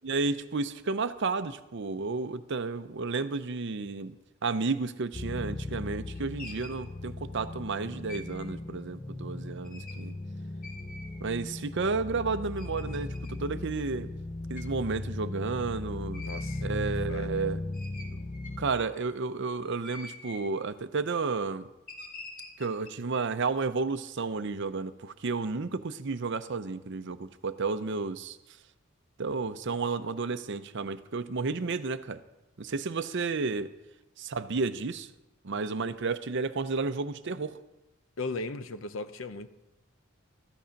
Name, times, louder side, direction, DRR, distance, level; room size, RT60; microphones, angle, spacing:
voice 1, 0.0-4.1 4.4-10.2 11.2-14.1 14.5-16.2 16.6-17.6 18.6-21.7 22.6-28.4 29.2-32.2 32.6-33.7 34.2-35.1 35.4-37.6, right 4 dB, 60° right, 0.7 m, -32 dB
sound 1, 5.1-18.7, left 2 dB, 25° left, 0.7 m, -37 dB
sound 2, 5.3-5.5 5.9-6.8 8.1-8.5 9.6-10.0 10.6-11.3 12.0-12.1 12.6-13.3 14.5-14.7 16.1-16.7 17.3-17.4 17.7-18.8 19.7-20.5 21.9-22.9, left 2 dB, 45° left, 1.9 m, -46 dB
voice 2, 16.2-17.5 38.2-39.5, left 3 dB, 65° left, 0.8 m, -38 dB
14.0 x 11.5 x 5.2 m
head